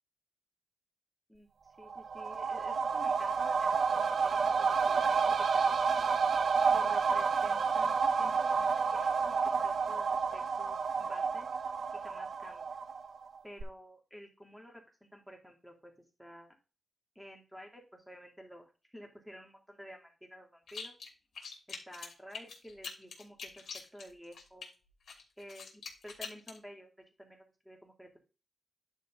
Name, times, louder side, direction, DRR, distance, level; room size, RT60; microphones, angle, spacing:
voice 1, 1.8-6.1 6.7-9.4 9.6-11.5 11.9-12.7 13.4-15.9 16.2-16.6 17.1-20.9 21.7-23.6 23.9-24.7 25.4-26.9 27.2-28.2, equal, ahead, 2 dB, 2.6 m, -51 dB
sound 1, 1.8-13.3 13.6-13.7, right 5 dB, 65° right, 0.6 m, -30 dB
sound 2, 20.7-21.1 21.3-24.7 25.1-26.6, left 5 dB, 75° left, 2.8 m, -44 dB
11.0 x 4.7 x 3.8 m, 0.31 s
wide cardioid pair, 105°, 0 cm